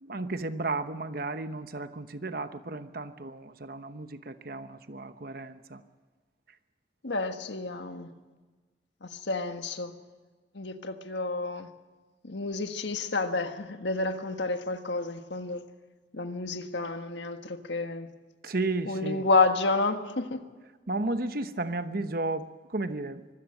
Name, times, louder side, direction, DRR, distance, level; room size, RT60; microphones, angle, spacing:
voice 1, 0.0-5.8 18.4-19.3 20.9-23.4, right 2 dB, 55° right, 10 dB, 1.0 m, -33 dB
voice 2, 7.0-8.1 9.0-9.9 10.5-11.7 12.2-15.6 16.1-18.1 18.9-20.4, left 3 dB, 75° left, 7 dB, 1.5 m, -30 dB
24.5 x 15.5 x 8.9 m, 1.4 s
head